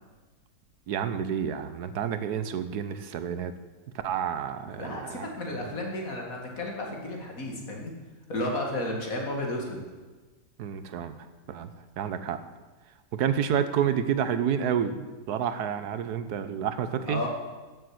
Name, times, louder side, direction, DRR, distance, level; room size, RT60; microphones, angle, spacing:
voice 1, 0.9-3.5 4.0-5.3 10.6-11.2 11.5-12.4 13.1-17.2, right 8 dB, 70° right, 11 dB, 1.3 m, -29 dB
voice 2, 4.8-7.9 8.3-9.8 17.1-17.3, left 1 dB, 50° left, 0 dB, 2.6 m, -33 dB
13.0 x 7.3 x 7.8 m, 1.3 s
omnidirectional pair, 1.8 m